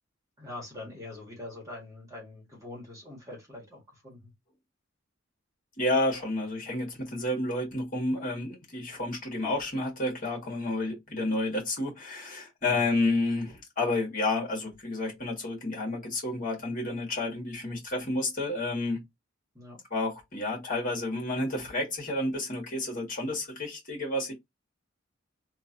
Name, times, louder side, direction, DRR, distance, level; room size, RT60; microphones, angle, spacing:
voice 1, 0.4-4.3 12.6-12.9 19.5-19.8, left 2 dB, 15° right, 1.5 m, -44 dB
voice 2, 5.8-19.0 19.9-24.3, left 2 dB, 45° left, 1.7 m, -30 dB
3.1 x 2.6 x 2.5 m
head